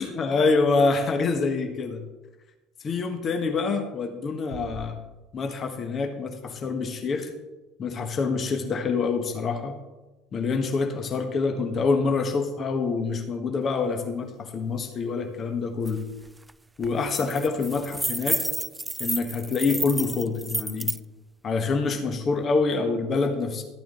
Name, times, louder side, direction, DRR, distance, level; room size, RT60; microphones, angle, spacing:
voice 1, 0.0-2.0 2.8-5.0 5.3-7.3 7.8-9.8 10.3-16.1 16.8-18.4 19.0-20.9 21.4-23.6, left 4 dB, 35° left, 6 dB, 1.3 m, -26 dB
Bass drum, 4.5-5.9, left 1 dB, 60° left, 2.5 m, -44 dB
sound 1, 15.9-16.0 16.3-16.5 16.8-21.0, right 2 dB, 10° right, 0.3 m, -30 dB
13.0 x 8.5 x 3.8 m, 1.1 s
figure-of-eight pair, 60°, 0 cm